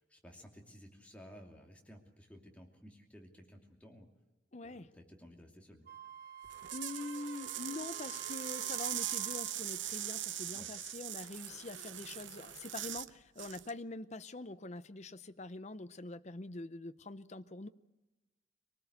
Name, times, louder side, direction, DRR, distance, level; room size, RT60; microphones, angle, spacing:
voice 1, 0.0-4.1 4.6-5.9 10.5-10.7, equal, 5° left, 1 dB, 2.7 m, -55 dB
voice 2, 4.5-4.9 6.7-17.7, left 2 dB, 35° left, 12 dB, 0.7 m, -44 dB
Wind instrument woodwind instrument, 5.9-9.6, right 9 dB, 50° right, 0.9 m, -50 dB
sound 1, 6.4-13.1 13.4-13.7, right 12 dB, 75° right, 0.7 m, -41 dB
24.0 x 19.0 x 8.1 m, 1.1 s
head